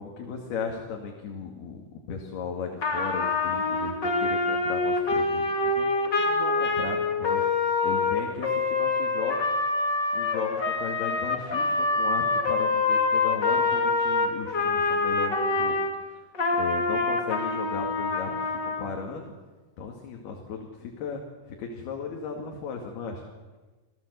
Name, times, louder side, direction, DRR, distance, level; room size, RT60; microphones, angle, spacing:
voice 1, 0.0-7.5 7.8-15.8 16.1-16.2 16.6-19.3 19.8-21.2 21.5-23.2, left 5 dB, 60° left, 1 dB, 4.1 m, -36 dB
Trumpet, 2.8-15.9 16.3-18.9, left 3 dB, 30° left, 2.4 m, -25 dB
28.0 x 17.5 x 8.2 m, 1.2 s
omnidirectional pair, 5.3 m